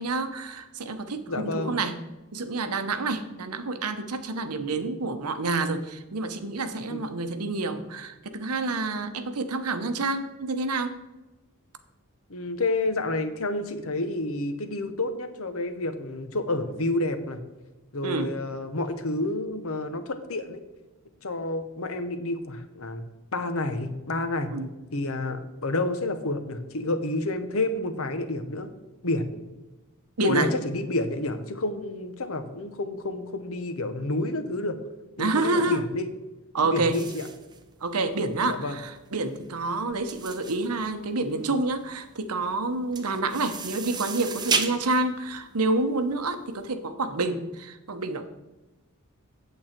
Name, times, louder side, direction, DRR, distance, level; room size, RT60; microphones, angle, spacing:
voice 1, 0.0-1.9 2.3-10.9 18.0-18.3 24.5-24.7 30.2-30.5 35.2-35.8 36.5-37.0 37.8-48.3, right 3 dB, 85° right, 9 dB, 0.9 m, -28 dB
voice 2, 1.3-1.8 6.9-7.0 12.3-17.4 17.9-20.6 21.2-23.0 23.3-24.5 24.9-28.7 29.0-29.4 30.2-34.8 35.2-36.1 36.7-37.3 38.5-38.8, left 2 dB, 65° left, 9 dB, 1.0 m, -29 dB
sound 1, 36.9-46.5, right 5 dB, 20° right, 0.7 m, -34 dB
8.5 x 7.9 x 4.4 m, 1.1 s
head